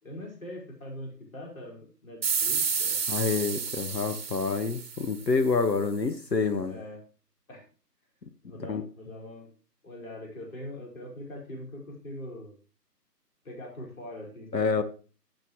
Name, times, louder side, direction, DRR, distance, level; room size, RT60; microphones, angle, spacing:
voice 1, 0.0-3.6 6.7-7.0 7.5-7.7 8.4-9.5 9.8-12.5 13.4-14.8, left 1 dB, 55° left, -1 dB, 4.9 m, -42 dB
sound 1, 2.2-5.5, right 6 dB, 40° right, 1.1 m, -30 dB
voice 2, 3.1-6.7 8.7-8.8 14.5-14.8, left 4 dB, 85° left, 10 dB, 1.3 m, -27 dB
15.5 x 6.9 x 3.1 m, 0.37 s
figure-of-eight pair, 150°, 49 cm